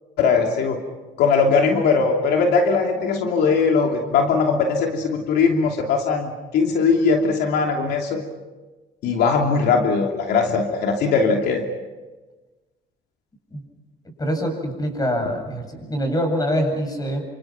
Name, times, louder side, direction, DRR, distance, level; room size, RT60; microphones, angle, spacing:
voice 1, 0.2-0.8 1.2-8.2 9.0-11.6, left 4 dB, 75° left, 2 dB, 2.9 m, -20 dB
voice 2, 14.2-17.3, equal, 20° left, 4 dB, 7.9 m, -24 dB
29.5 x 26.0 x 6.0 m, 1.2 s
cardioid pair, 110°, 17 cm